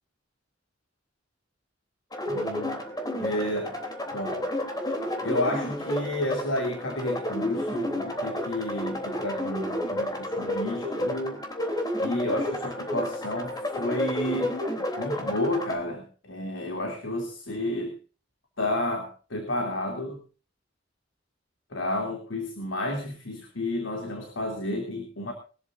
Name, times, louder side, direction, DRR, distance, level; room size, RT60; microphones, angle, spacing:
sound 1, 2.1-15.8, left 1 dB, 20° left, 3.3 m, -31 dB
voice 1, 2.3-2.8 3.2-3.7 4.1-4.4 5.2-11.4 12.0-14.6 15.0-17.9 18.6-20.2 21.7-25.3, left 1 dB, 85° left, 3 dB, 3.0 m, -31 dB
22.5 x 13.0 x 2.6 m, 0.36 s
head